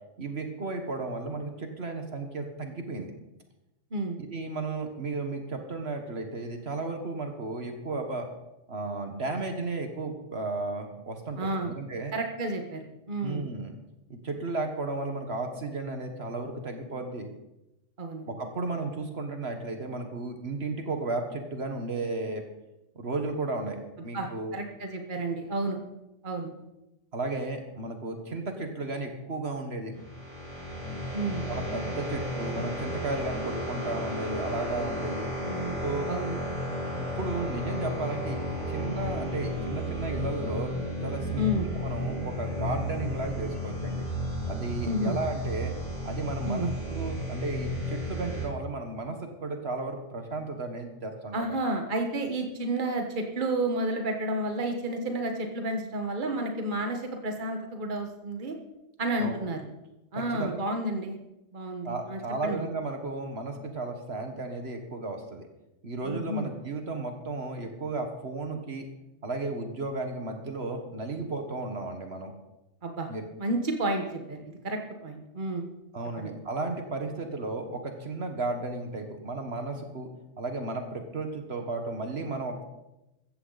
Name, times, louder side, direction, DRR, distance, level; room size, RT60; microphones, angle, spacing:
voice 1, 0.2-3.1 4.3-8.3 8.7-12.1 13.2-13.7 14.1-17.3 18.3-22.4 23.0-24.6 27.1-30.0 31.5-35.3 35.8-36.1 37.0-38.4 38.7-40.7 41.0-44.1 44.5-45.7 46.0-51.6 59.2-59.4 60.1-60.6 61.8-65.5 65.8-68.9 69.2-72.3 73.1-73.2 75.9-80.1 80.4-82.6, right 3 dB, 60° right, 5 dB, 1.7 m, -34 dB
voice 2, 3.9-4.2 11.4-11.7 12.1-12.8 13.1-13.4 18.0-18.3 24.1-25.8 26.2-26.5 31.1-31.5 35.4-36.4 41.3-41.7 44.8-45.2 46.4-46.7 51.3-58.5 59.0-59.6 60.1-61.2 61.5-62.6 66.0-66.5 72.8-73.1 73.4-75.7 76.2-76.4, right 1 dB, 45° right, 4 dB, 1.6 m, -31 dB
sound 1, 29.9-48.5, equal, 30° left, 4.0 m, -33 dB
15.0 x 14.5 x 4.1 m, 0.94 s
omnidirectional pair, 1.2 m